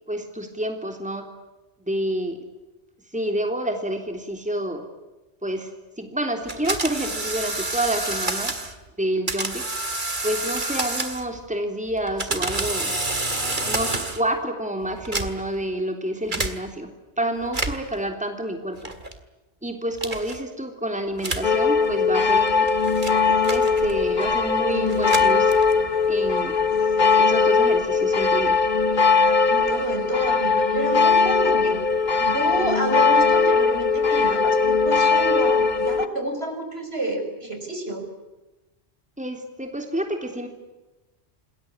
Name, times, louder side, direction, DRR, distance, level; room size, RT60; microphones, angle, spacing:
voice 1, 0.1-1.3 1.9-2.4 3.1-4.9 5.4-5.7 6.0-8.5 9.0-9.7 10.2-12.9 13.6-16.9 17.2-18.9 19.6-22.7 23.3-25.5 26.1-26.6 27.2-28.6 39.2-40.5, right 1 dB, 5° right, 5 dB, 3.4 m, -28 dB
sound 1, 6.5-8.7 9.3-11.4 12.0-14.3 15.0-15.6 16.3-16.5 17.4-18.0 18.8-19.2 20.0-20.4 21.2-21.5 22.3-24.1 24.8-25.9, right 2 dB, 45° right, 2.6 m, -29 dB
sound 2, 21.4-36.1, left 4 dB, 45° left, 1.2 m, -20 dB
voice 2, 29.4-31.8 32.2-38.0, right 1 dB, 65° right, 5 dB, 6.0 m, -29 dB
28.0 x 21.0 x 9.8 m, 1.1 s
omnidirectional pair, 1.1 m